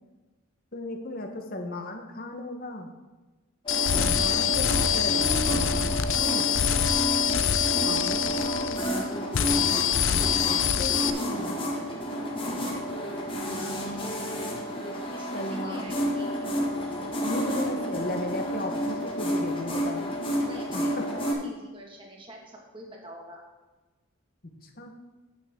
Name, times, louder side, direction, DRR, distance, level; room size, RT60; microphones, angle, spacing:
voice 1, 0.7-2.9 3.9-6.5 7.8-11.6 13.5-14.1 15.3-15.8 17.2-20.0 20.7-21.0 24.6-24.9, left 2 dB, 45° left, 4 dB, 1.1 m, -36 dB
sound 1, 3.6-21.3, equal, 25° left, 1.4 m, -30 dB
sound 2, 3.7-9.0 9.3-11.1, left 9 dB, 70° left, 0.5 m, -25 dB
voice 2, 13.4-13.8 15.1-16.5 20.4-23.4, right 1 dB, 25° right, -1 dB, 1.7 m, -45 dB
9.2 x 8.9 x 3.6 m, 1.2 s
head